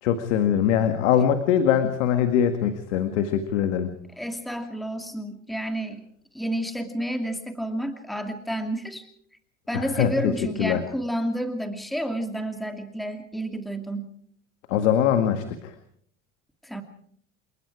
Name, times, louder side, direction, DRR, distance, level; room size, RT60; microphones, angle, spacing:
voice 1, 0.0-3.9 9.7-10.3 10.6-10.8 14.7-15.7, left 9 dB, 85° left, 8 dB, 1.9 m, -22 dB
voice 2, 4.2-6.0 6.3-9.1 9.7-14.1 16.6-16.8, equal, ahead, 5 dB, 2.6 m, -30 dB
29.0 x 19.0 x 4.9 m, 0.62 s
hypercardioid pair, 90°, 36 cm